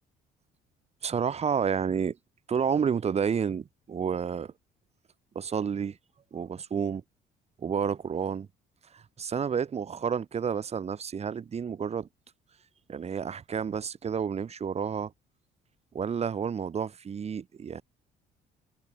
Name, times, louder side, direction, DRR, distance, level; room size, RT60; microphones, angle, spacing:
voice 1, 1.0-2.2 2.5-4.5 5.3-6.0 6.3-7.0 7.6-8.5 8.9-12.1 12.9-15.1 15.9-17.8, right 7 dB, 40° right, 4.8 m, -30 dB
cardioid pair, 110°, 17 cm